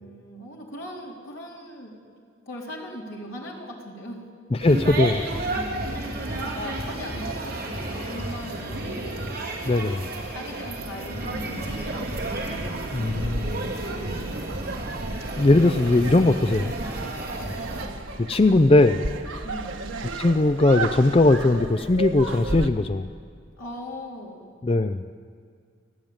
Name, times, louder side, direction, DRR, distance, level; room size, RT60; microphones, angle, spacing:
voice 1, 0.0-1.9 2.5-4.2 5.5-9.9 10.3-12.7 13.8-14.3 17.3-17.8 19.4-19.8 23.6-24.5, equal, 85° left, -2 dB, 3.9 m, -39 dB
voice 2, 4.6-5.2 9.7-10.1 12.9-13.7 15.4-16.7 18.2-19.0 20.2-23.1 24.6-25.1, left 2 dB, 30° left, 10 dB, 0.4 m, -19 dB
sound 1, 4.6-17.9, right 2 dB, 50° right, 3.2 m, -32 dB
sound 2, 11.3-22.7, right 2 dB, 80° right, 1.4 m, -34 dB
28.0 x 10.5 x 8.8 m, 2.1 s
head